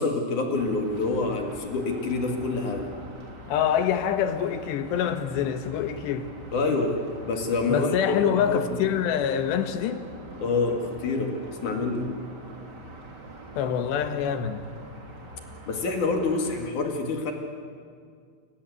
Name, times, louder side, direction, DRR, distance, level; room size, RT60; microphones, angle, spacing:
voice 1, 0.0-2.9 6.5-8.9 10.4-12.1 15.7-17.3, left 3 dB, 50° left, 3.3 m, -27 dB
sound 1, 0.5-16.6, right 2 dB, 30° right, 2.9 m, -44 dB
voice 2, 3.5-6.3 7.7-10.1 13.6-14.7, left 9 dB, 90° left, 3.5 m, -26 dB
29.5 x 22.5 x 8.1 m
omnidirectional pair, 4.8 m